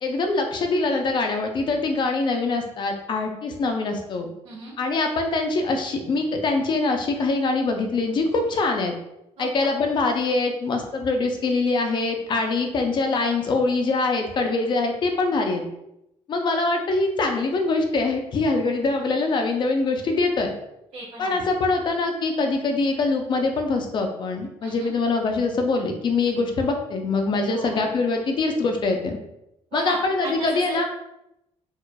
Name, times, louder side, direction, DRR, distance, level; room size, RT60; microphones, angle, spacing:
voice 1, 0.0-4.3 4.8-8.9 9.4-15.7 16.3-20.5 21.2-29.2 29.7-30.9, left 3 dB, 45° left, 4 dB, 0.5 m, -23 dB
voice 2, 4.4-4.7 9.4-9.7 20.9-21.5 24.6-24.9 27.5-27.8 29.7-30.0 30.2-30.8, right 2 dB, 70° right, -9 dB, 1.3 m, -36 dB
4.6 x 2.4 x 2.3 m, 0.84 s
cardioid pair, 150°, 11 cm